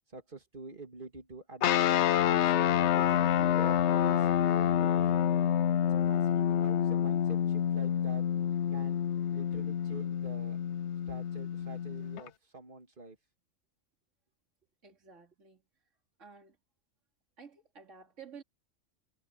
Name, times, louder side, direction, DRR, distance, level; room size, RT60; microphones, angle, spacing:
voice 1, 0.1-1.8 2.3-5.2 5.9-8.2 8.7-9.0 9.3-10.6 11.1-13.2, right 3 dB, 40° right, 2.7 m, -47 dB
sound 1, 1.6-12.3, left 10 dB, 65° left, 0.8 m, -28 dB
voice 2, 14.8-15.6 16.2-16.6 17.4-18.4, right 6 dB, 65° right, 3.1 m, -52 dB
omnidirectional pair, 1.4 m